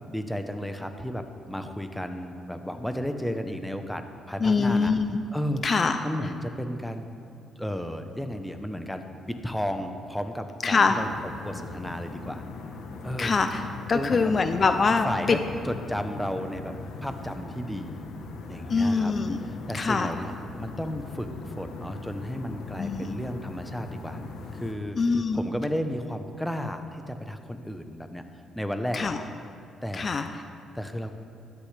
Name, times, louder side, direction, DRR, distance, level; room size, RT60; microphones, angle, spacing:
voice 1, 0.1-4.9 5.3-5.6 6.0-7.0 7.6-11.1 11.4-12.4 13.0-13.4 13.9-14.3 15.0-15.4 15.6-16.7 17.0-18.0 18.5-19.1 19.5-20.3 20.6-24.2 24.5-25.0 25.3-28.2 28.5-29.1 29.8-30.1 30.7-31.1, equal, 5° left, 7 dB, 0.9 m, -33 dB
voice 2, 4.4-5.2 5.6-6.0 10.6-11.0 13.2-13.6 13.9-15.4 18.7-19.4 19.7-20.1 22.8-23.2 25.0-25.4 28.9-29.2 29.9-30.3, left 4 dB, 40° left, 8 dB, 0.5 m, -24 dB
sound 1, 10.9-24.7, left 3 dB, 75° left, 1.1 m, -40 dB
13.5 x 12.0 x 3.4 m, 2.6 s
cardioid pair, 90°, 0 cm